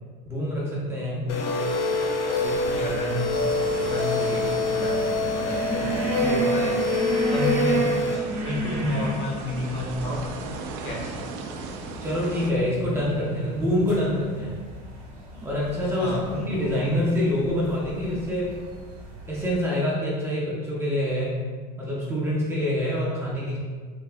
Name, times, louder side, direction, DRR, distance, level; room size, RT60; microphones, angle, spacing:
voice 1, 0.3-1.3 12.0-14.6 15.4-16.1 16.5-18.6 19.3-21.4 21.8-23.6, equal, 10° right, -6 dB, 0.5 m, -26 dB
voice 2, 1.2-1.6 2.4-3.3 3.7-6.9 7.3-10.4 10.8-11.3 16.0-16.7, equal, 30° left, -3 dB, 0.7 m, -31 dB
sound 1, 1.3-8.2, left 2 dB, 65° left, 0.5 m, -25 dB
sound 2, 2.5-19.6, right 2 dB, 45° right, 1.0 m, -34 dB
sound 3, 3.3-12.5, right 4 dB, 65° right, 0.4 m, -38 dB
3.3 x 2.6 x 2.3 m, 1.5 s
supercardioid pair, 135°, 20 cm